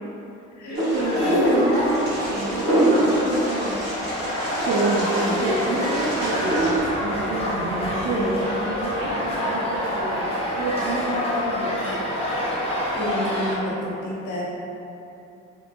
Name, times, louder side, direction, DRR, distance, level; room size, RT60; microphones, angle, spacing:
Wind, 0.7-6.8, right 1 dB, 35° right, 1.1 m, -24 dB
voice 1, 0.7-3.8 4.2-4.4 4.6-6.7 7.0-10.2 10.6-11.8, right 2 dB, 90° right, -6 dB, 0.5 m, -28 dB
sound 1, 0.9-13.5, equal, 20° left, 0.8 m, -27 dB
voice 2, 12.9-14.4, equal, 75° left, -5 dB, 0.8 m, -29 dB
2.9 x 2.6 x 2.5 m, 2.8 s
cardioid pair, 90°, 30 cm